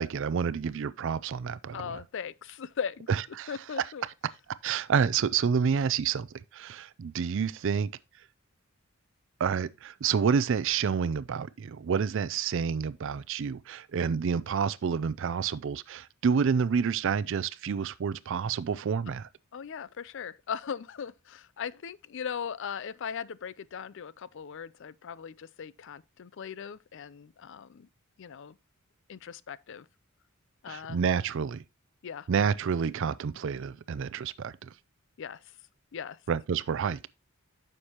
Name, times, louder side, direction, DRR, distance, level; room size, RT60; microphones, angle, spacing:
voice 1, 0.0-2.0 3.1-3.6 4.6-6.3 6.5-7.9 9.4-19.3 30.7-31.6 32.3-34.7 36.3-37.1, right 6 dB, 60° right, 0.4 m, -29 dB
voice 2, 1.7-3.1 3.5-4.0 19.1-19.2 19.5-27.9 28.2-28.6 29.1-29.9 30.6-31.0 32.0-32.3 35.2-35.4 35.9-36.2, left 7 dB, 60° left, 0.4 m, -39 dB
9.7 x 6.6 x 2.9 m
head